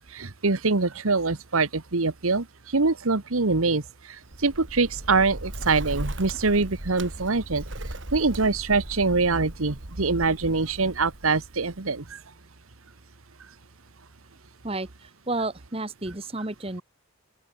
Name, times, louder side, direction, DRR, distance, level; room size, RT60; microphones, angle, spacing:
voice 1, 0.0-7.6 8.1-12.2, right 3 dB, 85° right, 1.3 m, -24 dB
Bird, 4.2-12.0, right 1 dB, 60° right, 2.7 m, -38 dB
voice 2, 14.6-16.8, right 2 dB, 25° right, 1.6 m, -31 dB
open air
head